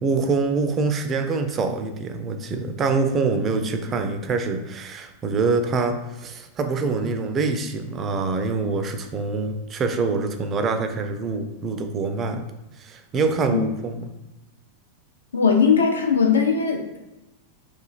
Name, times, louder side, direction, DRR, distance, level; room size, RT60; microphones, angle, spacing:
voice 1, 0.0-12.4 12.8-14.1, right 4 dB, 25° right, 6 dB, 0.3 m, -25 dB
voice 2, 15.3-17.0, left 6 dB, 70° left, 3 dB, 0.4 m, -19 dB
3.0 x 2.3 x 2.4 m, 0.98 s
figure-of-eight pair, 90°, 0 cm